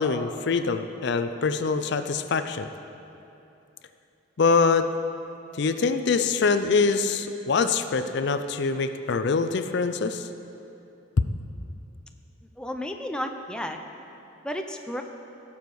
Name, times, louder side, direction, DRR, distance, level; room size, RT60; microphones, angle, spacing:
voice 1, 0.0-2.7 4.4-4.9 5.6-10.3, left 4 dB, 60° left, 9 dB, 0.5 m, -24 dB
voice 2, 12.6-13.8 14.4-15.0, equal, 5° left, 4 dB, 0.5 m, -32 dB
16.0 x 7.2 x 4.8 m, 2.8 s
head